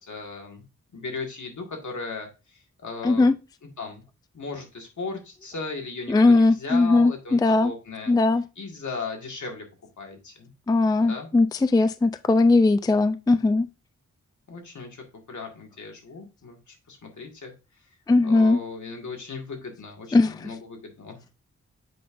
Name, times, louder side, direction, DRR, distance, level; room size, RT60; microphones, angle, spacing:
voice 1, 0.0-0.6 0.9-3.3 3.8-4.0 4.3-8.1 8.6-9.7 10.0-10.5 11.0-11.3 14.5-17.5 18.2-21.2, left 4 dB, 75° left, 1.9 m, -37 dB
voice 2, 3.0-3.3 6.1-7.7 8.1-8.4 10.7-13.7 18.1-18.6 20.1-20.5, left 3 dB, 15° left, 0.3 m, -19 dB
7.7 x 5.4 x 2.5 m
wide cardioid pair, 105°, 30 cm